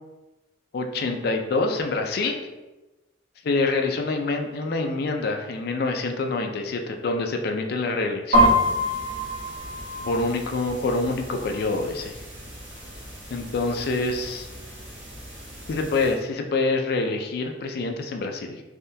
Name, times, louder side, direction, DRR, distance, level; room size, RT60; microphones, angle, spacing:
voice 1, 0.7-2.4 3.4-8.6 10.0-12.2 13.3-14.5 15.7-18.6, left 3 dB, 55° left, 4 dB, 0.4 m, -26 dB
sound 1, 8.3-16.1, equal, 90° right, 1.3 m, -28 dB
3.5 x 2.2 x 2.7 m, 1.1 s
head